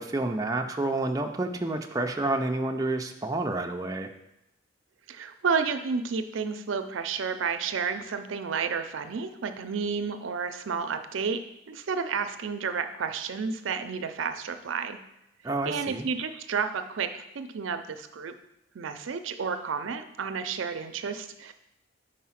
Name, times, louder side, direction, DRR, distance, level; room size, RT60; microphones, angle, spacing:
voice 1, 0.0-4.1 15.4-16.1, right 2 dB, 20° right, 3 dB, 0.4 m, -29 dB
voice 2, 5.1-11.4 11.7-15.0 15.6-18.3 18.7-21.5, right 5 dB, 80° right, 9 dB, 0.5 m, -31 dB
4.8 x 4.7 x 5.7 m, 0.84 s
head